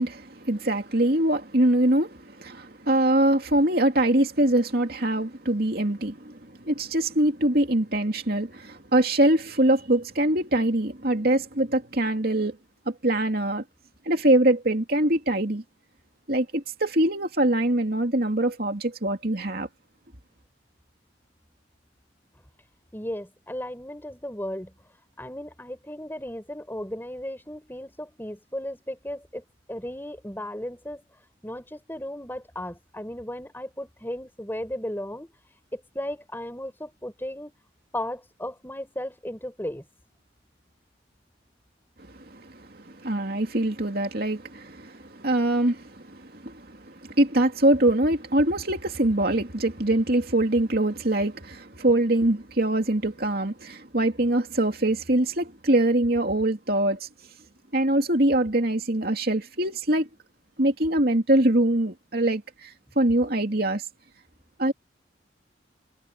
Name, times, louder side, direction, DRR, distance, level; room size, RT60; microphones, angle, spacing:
voice 1, 0.0-12.6 12.9-13.6 14.1-15.6 16.3-19.7 42.1-57.1 57.7-60.1 60.6-63.8 64.6-64.7, right 1 dB, 55° right, 2.8 m, -23 dB
voice 2, 22.9-24.7 25.2-31.0 31.4-35.3 35.7-37.5 37.9-39.9, left 1 dB, 10° left, 4.7 m, -35 dB
head